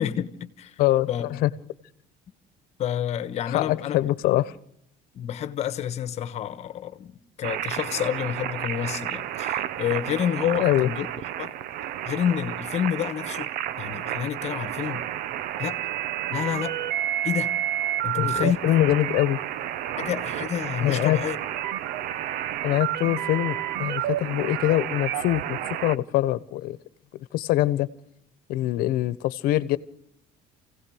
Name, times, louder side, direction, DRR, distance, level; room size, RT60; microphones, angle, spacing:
voice 1, 0.0-0.7 1.1-1.3 2.8-4.0 5.1-11.1 11.4-11.5 12.1-13.5 13.8-15.1 15.6-15.8 16.3-16.7 17.2-17.5 18.0-18.6 20.0-21.4, left 10 dB, 45° left, 1.3 m, -29 dB
voice 2, 0.8-1.5 3.5-4.5 10.6-10.9 18.1-19.4 20.8-21.2 22.6-26.8 27.1-27.9 28.5-29.8, left 15 dB, 70° left, 1.1 m, -24 dB
sound 1, 7.4-26.0, right 12 dB, 65° right, 0.8 m, -30 dB
28.5 x 17.0 x 6.4 m
cardioid pair, 155°, 16 cm